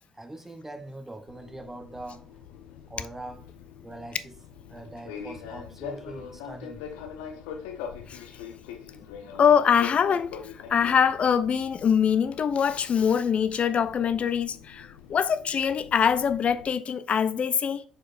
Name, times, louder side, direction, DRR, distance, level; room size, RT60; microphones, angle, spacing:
voice 1, 0.2-2.3 2.9-3.5 3.8-4.4 4.7-6.8, right 1 dB, 10° right, 0.6 m, -42 dB
Fixed-wing aircraft airplane, 1.3-16.6, left 7 dB, 75° left, 0.7 m, -43 dB
voice 2, 9.4-10.3 10.7-17.8, left 7 dB, 45° left, 0.4 m, -23 dB
4.5 x 4.4 x 2.4 m
hypercardioid pair, 50°, 3 cm